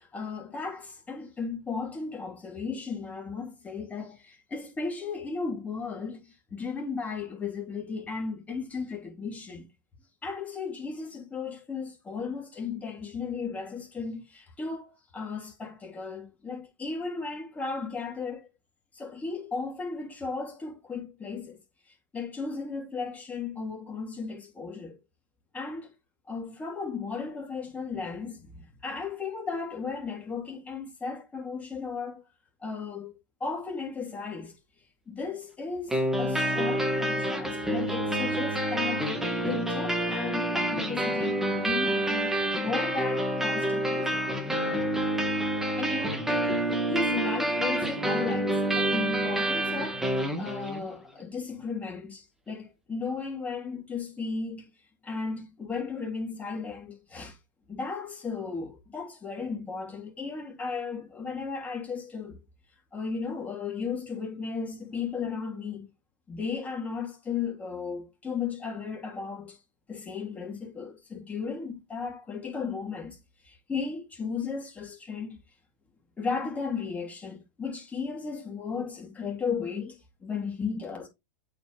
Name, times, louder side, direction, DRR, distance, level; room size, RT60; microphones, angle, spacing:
voice 1, 0.0-6.2 6.5-9.6 10.2-18.5 18.9-21.6 22.1-25.0 25.5-25.9 26.3-32.2 32.6-33.1 33.4-34.5 35.1-44.6 45.8-46.2 46.9-54.7 55.0-57.4 57.7-62.4 62.9-65.9 66.3-69.6 69.9-73.2 73.4-75.4 76.2-81.1, left 5 dB, 15° left, 2.9 m, -35 dB
sound 1, 35.9-50.9, right 1 dB, 5° right, 1.6 m, -28 dB
8.0 x 5.0 x 3.1 m
hypercardioid pair, 130°, 10 cm